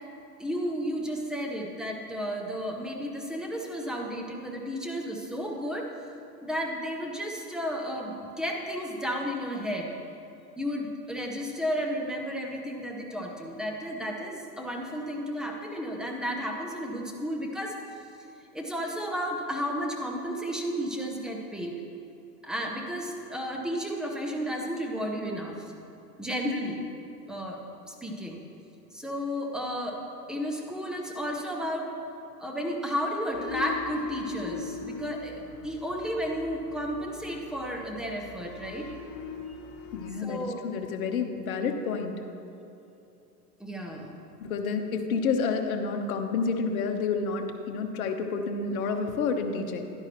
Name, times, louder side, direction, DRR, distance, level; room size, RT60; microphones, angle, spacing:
voice 1, 0.4-5.9 6.4-9.9 10.6-17.7 18.5-21.8 22.4-25.7 26.2-26.8 27.3-27.6 27.9-28.4 28.9-30.0 30.3-31.9 32.4-38.9 39.5-39.6 40.2-40.6 43.6-44.2, equal, ahead, 0 dB, 0.8 m, -33 dB
sound 1, 33.3-40.1, left 5 dB, 30° left, 1.1 m, -41 dB
voice 2, 39.9-42.1 44.4-49.9, left 5 dB, 55° left, 5 dB, 1.1 m, -29 dB
11.5 x 10.5 x 3.1 m, 2.8 s
hypercardioid pair, 110°, 49 cm